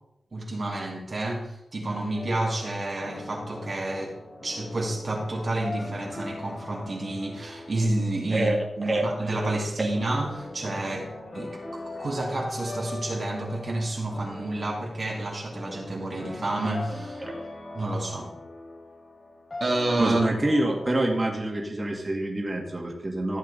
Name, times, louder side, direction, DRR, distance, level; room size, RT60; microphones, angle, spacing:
voice 1, 0.3-4.2 4.4-17.2 17.7-18.3 19.6-20.2, right 2 dB, 50° right, -2 dB, 2.4 m, -30 dB
sound 1, 2.1-21.0, left 2 dB, 50° left, 4.4 m, -40 dB
voice 2, 8.3-9.0 9.8-9.9 20.0-23.4, right 1 dB, 30° right, -1 dB, 2.5 m, -26 dB
14.5 x 7.4 x 4.2 m, 0.86 s
wide cardioid pair, 80°, 0 cm